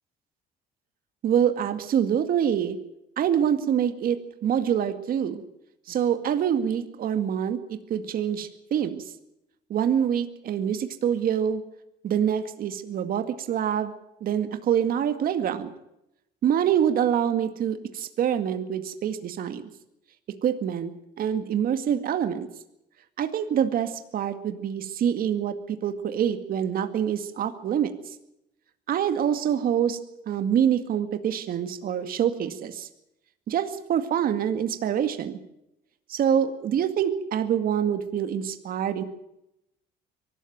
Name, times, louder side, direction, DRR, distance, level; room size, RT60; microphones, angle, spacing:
voice 1, 1.2-2.8 3.2-5.4 5.9-9.1 9.7-11.6 12.0-13.9 14.2-15.7 16.4-19.7 20.4-20.9 21.2-22.5 23.2-27.9 28.9-30.0 30.3-32.9 33.5-35.4 36.1-39.0, right 9 dB, 60° right, 9 dB, 2.1 m, -25 dB
23.0 x 13.0 x 9.2 m, 0.84 s
cardioid pair, 110°, 17 cm